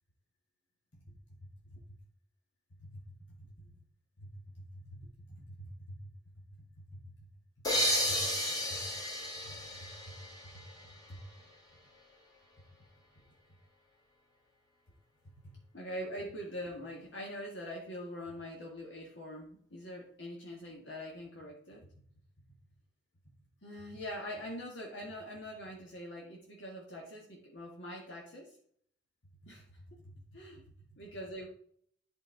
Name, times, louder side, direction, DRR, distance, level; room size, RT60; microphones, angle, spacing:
voice 1, 1.4-1.8 2.8-3.2 3.6-3.7 4.2-6.1 6.8-7.0 7.7-8.3 8.7-8.9 9.4-10.1 10.5-11.2 15.4-21.9 22.5-22.6 23.6-28.5 29.4-31.5, equal, 70° left, -1 dB, 1.7 m, -45 dB
sound 1, 7.6-11.2, equal, 20° left, 1.5 m, -33 dB
10.5 x 4.6 x 4.5 m, 0.62 s
head